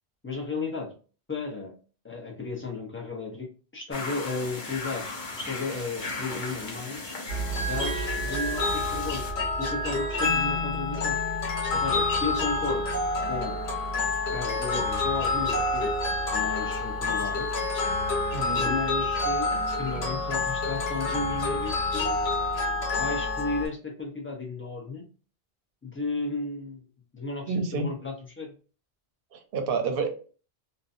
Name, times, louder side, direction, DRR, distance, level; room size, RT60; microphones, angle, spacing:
voice 1, 0.2-0.9 1.3-1.8 2.0-3.5 3.7-7.2 7.6-9.2 9.6-11.2 11.7-12.8 13.3-13.6 14.3-15.9 16.3-17.5 18.6-19.5 19.8-22.2 22.8-25.0 25.8-26.8 27.1-28.5, left 3 dB, 15° left, 0 dB, 0.5 m, -34 dB
sound 1, 3.9-9.3, left 3 dB, 50° left, 0.8 m, -37 dB
sound 2, 7.3-23.7, left 2 dB, 70° left, 1.2 m, -28 dB
voice 2, 18.3-18.6 27.5-27.9 29.3-30.1, right 4 dB, 60° right, 6 dB, 0.7 m, -28 dB
2.6 x 2.2 x 2.5 m, 0.37 s
omnidirectional pair, 1.1 m